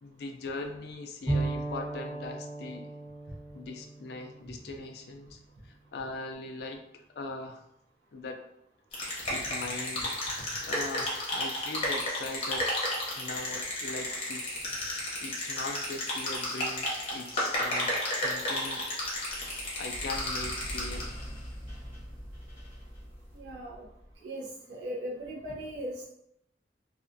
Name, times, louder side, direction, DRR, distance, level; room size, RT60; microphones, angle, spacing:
voice 1, 0.0-2.9 3.5-5.4 5.6-6.8 7.1-7.6 8.1-8.4 8.9-10.1 10.7-12.7 13.2-18.9 19.8-21.1, left 3 dB, 60° left, 4 dB, 0.3 m, -40 dB
Bowed string instrument, 1.3-5.0, right 2 dB, ahead, 0.7 m, -35 dB
sound 1, 8.9-21.2, left 1 dB, 30° left, 0.7 m, -33 dB
sound 2, 19.0-24.1, equal, 35° right, 1.0 m, -43 dB
voice 2, 23.3-23.9 24.2-26.0, equal, 70° right, -4 dB, 0.6 m, -38 dB
2.4 x 2.2 x 2.5 m, 0.77 s
head